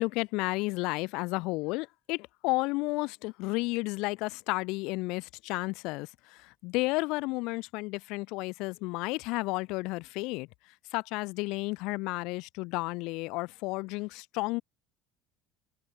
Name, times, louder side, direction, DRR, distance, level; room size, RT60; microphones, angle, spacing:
voice 1, 0.0-10.5 10.9-14.6, left 24 dB, 65° left, 0.8 m, -32 dB
hypercardioid pair, 70°, 0 cm